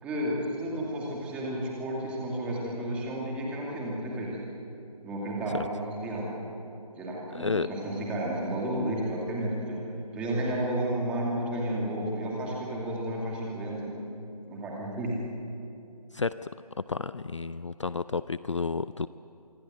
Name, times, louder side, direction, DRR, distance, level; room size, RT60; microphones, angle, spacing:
voice 1, 0.0-4.4 5.0-6.3 6.9-9.8 10.1-14.0 14.5-15.2, right 1 dB, 5° right, -3 dB, 2.5 m, -32 dB
voice 2, 7.3-7.7 16.1-16.3 16.9-19.1, left 4 dB, 50° left, 15 dB, 0.5 m, -31 dB
26.0 x 22.5 x 7.8 m, 2.7 s
figure-of-eight pair, 165°, 20 cm